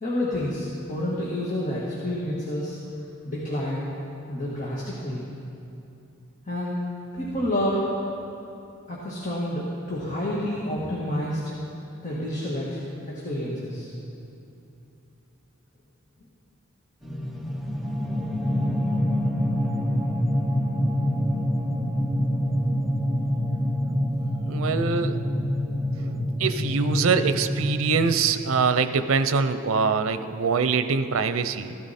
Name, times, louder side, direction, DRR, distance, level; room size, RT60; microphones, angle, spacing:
voice 1, 0.0-2.8 3.2-3.9 4.3-5.2 6.5-6.8 7.1-8.1 8.9-11.4 12.0-13.9, left 1 dB, 40° left, -6 dB, 1.7 m, -29 dB
sound 1, 17.0-28.1, equal, ahead, 0.8 m, -26 dB
voice 2, 24.4-25.2 26.0-31.7, right 5 dB, 90° right, 11 dB, 0.6 m, -24 dB
15.0 x 12.0 x 4.2 m, 2.8 s
head